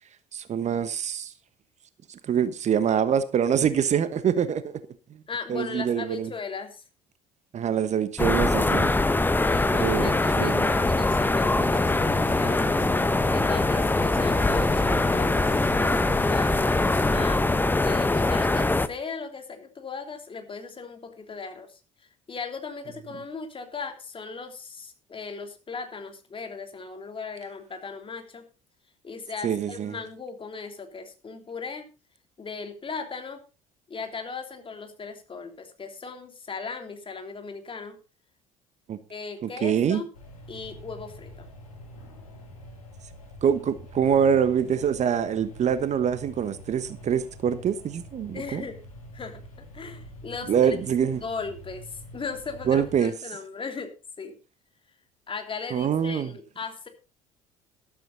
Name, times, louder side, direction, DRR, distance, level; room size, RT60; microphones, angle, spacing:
voice 1, 0.3-1.3 2.1-4.8 5.5-6.3 7.5-8.9 9.8-10.1 10.4-10.7 29.4-30.0 38.9-39.0 39.4-40.0 43.4-48.6 50.5-51.2 52.7-53.1 55.7-56.3, right 8 dB, 40° right, 1.2 m, -25 dB
voice 2, 5.3-6.8 9.4-21.8 22.3-28.4 29.0-31.9 32.4-33.4 33.9-38.0 39.1-40.1 40.5-41.3 48.3-48.8 49.1-50.7 51.2-53.9 54.2-54.3 55.3-56.9, left 5 dB, 30° left, 3.2 m, -38 dB
sound 1, 8.2-18.9, left 2 dB, 10° left, 1.0 m, -23 dB
sound 2, 9.3-17.2, right 4 dB, 80° right, 4.3 m, -43 dB
sound 3, 40.1-53.0, equal, 80° left, 3.4 m, -46 dB
13.5 x 12.5 x 4.0 m
figure-of-eight pair, 55°, 18 cm